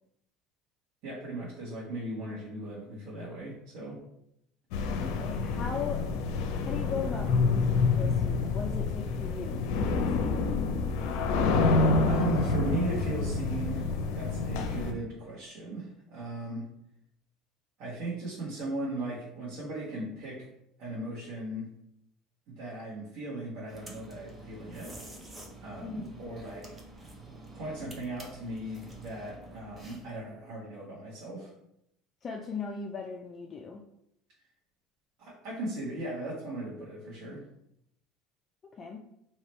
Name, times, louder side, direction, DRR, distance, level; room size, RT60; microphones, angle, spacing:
voice 1, 1.0-4.0 12.0-16.7 17.8-20.5 20.8-21.7 22.5-24.9 25.6-26.7 27.5-31.5 35.2-37.4, right 2 dB, 70° right, -7 dB, 1.4 m, -37 dB
sound 1, 4.7-14.9, left 4 dB, 80° left, 0.6 m, -27 dB
voice 2, 4.9-6.0 6.6-10.5 25.8-26.2 32.2-33.8 38.8-39.0, left 5 dB, 30° left, 1 dB, 0.4 m, -38 dB
sound 2, 23.7-30.2, right 2 dB, 20° right, 0.8 m, -48 dB
3.2 x 2.9 x 4.3 m, 0.79 s
cardioid pair, 130°, 0 cm